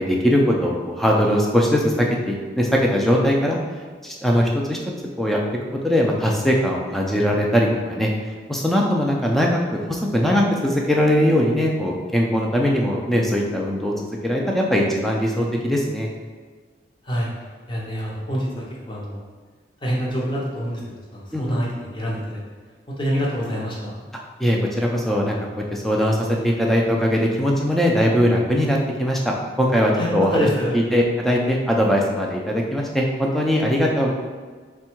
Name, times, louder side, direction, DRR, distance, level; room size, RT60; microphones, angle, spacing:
voice 1, 0.0-3.6 4.0-4.8 5.2-5.4 5.8-8.1 8.5-16.1 21.3-21.6 24.4-25.4 25.7-30.5 30.7-34.1, equal, ahead, -1 dB, 0.4 m, -20 dB
voice 2, 17.7-19.2 19.8-22.4 22.9-24.1 30.0-30.8, equal, 25° left, -4 dB, 0.7 m, -26 dB
3.6 x 2.3 x 4.4 m, 1.5 s
head